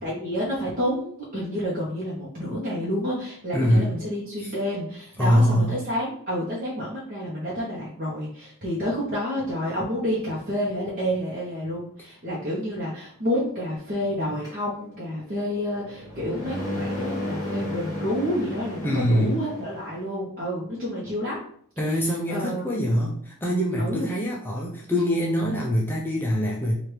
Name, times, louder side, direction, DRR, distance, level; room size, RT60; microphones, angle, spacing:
voice 1, 0.0-21.4 21.9-22.0 22.3-23.0 23.8-24.1, equal, 40° right, -7 dB, 0.9 m, -29 dB
voice 2, 3.5-3.9 4.4-4.5 5.2-5.8 18.8-19.4 21.8-26.7, equal, 10° left, -3 dB, 0.4 m, -23 dB
sound 1, 14.4-20.0, left 1 dB, 15° right, 1.2 m, -34 dB
4.6 x 2.4 x 3.2 m, 0.63 s
head